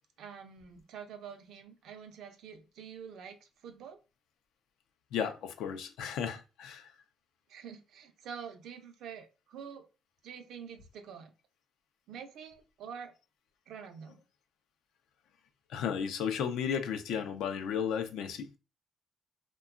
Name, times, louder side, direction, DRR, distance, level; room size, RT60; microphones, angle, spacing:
voice 1, 0.2-4.0 7.5-9.9 10.2-11.3 12.1-13.1 13.7-14.2, right 7 dB, 80° right, 0.5 m, -46 dB
voice 2, 5.1-6.9 15.7-18.6, left 7 dB, 85° left, 0.4 m, -34 dB
2.8 x 2.2 x 2.4 m
cardioid pair, 90°, 0 cm